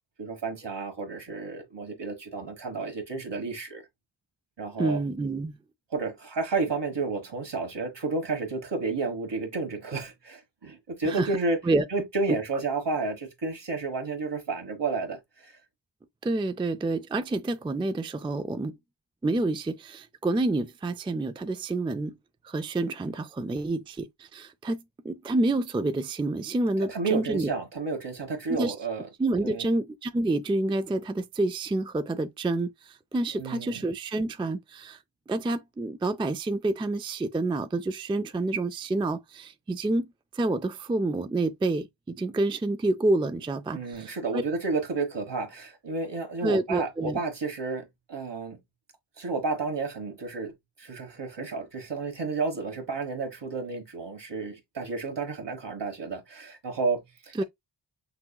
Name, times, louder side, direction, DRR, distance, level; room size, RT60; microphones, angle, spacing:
voice 1, 0.2-3.8 4.6-5.0 5.9-11.6 11.9-15.5 26.8-29.1 29.4-29.7 33.3-33.8 43.7-48.6 49.2-50.5 50.8-57.4, right 3 dB, 65° right, 1.5 m, -31 dB
voice 2, 4.8-5.6 11.0-11.3 11.7-11.8 16.2-18.8 19.2-22.2 22.4-27.5 28.5-28.7 29.2-35.0 35.3-40.1 40.3-44.4 46.4-47.2 57.4-57.5, right 2 dB, 15° right, 0.3 m, -28 dB
6.0 x 2.7 x 2.3 m
wide cardioid pair, 85°, 45 cm